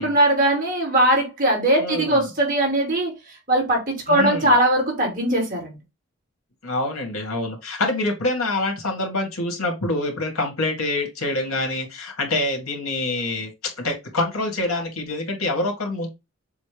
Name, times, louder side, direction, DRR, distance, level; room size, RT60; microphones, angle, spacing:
voice 1, 0.0-3.1 3.5-5.7, right 1 dB, 40° right, 2.8 m, -20 dB
voice 2, 1.8-2.3 4.1-4.5 6.6-16.1, left 2 dB, 85° left, 2.5 m, -26 dB
7.3 x 2.7 x 5.1 m
head